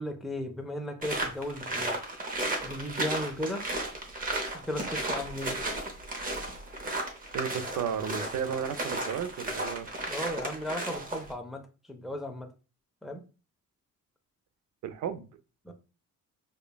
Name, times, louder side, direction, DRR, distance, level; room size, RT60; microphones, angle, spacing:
voice 1, 0.0-2.0 2.6-3.6 4.5-5.6 10.1-11.6 11.9-12.5 13.0-13.2 15.6-15.7, left 1 dB, ahead, 4 dB, 0.3 m, -35 dB
sound 1, 1.0-11.3, right 2 dB, 25° right, 0.7 m, -34 dB
voice 2, 7.3-9.9 14.8-15.3, right 8 dB, 65° right, 10 dB, 0.5 m, -33 dB
5.0 x 2.2 x 2.2 m, 0.34 s
cardioid pair, 130°, 32 cm